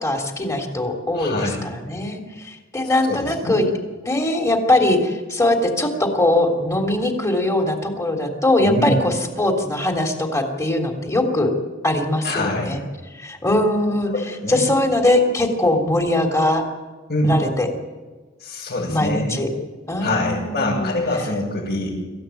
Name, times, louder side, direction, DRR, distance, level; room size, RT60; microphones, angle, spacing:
voice 1, 0.0-3.7 4.0-11.5 11.8-12.8 13.1-14.1 14.5-16.6 17.2-17.7 18.9-19.5 19.9-20.9, left 1 dB, 15° left, 3 dB, 3.4 m, -21 dB
voice 2, 1.1-1.6 3.0-3.6 8.6-9.0 12.2-12.8 14.1-14.7 17.1-17.3 18.4-19.3 20.0-21.9, left 1 dB, 55° left, -7 dB, 7.7 m, -24 dB
26.0 x 15.5 x 9.2 m, 1.3 s
head